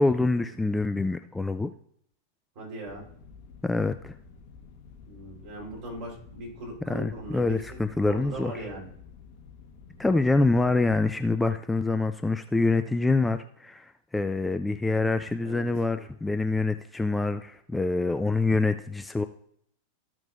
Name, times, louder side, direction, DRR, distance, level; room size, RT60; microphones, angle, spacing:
voice 1, 0.0-1.7 3.6-4.1 6.9-8.7 10.0-19.2, left 3 dB, 5° left, 9 dB, 0.3 m, -26 dB
voice 2, 2.6-3.0 5.0-7.8 8.0-8.9 15.4-15.7, right 1 dB, 45° right, -2 dB, 3.8 m, -39 dB
sound 1, 2.8-11.0, left 6 dB, 45° left, 1.2 m, -50 dB
13.5 x 6.0 x 2.5 m, 0.68 s
figure-of-eight pair, 90°, 0 cm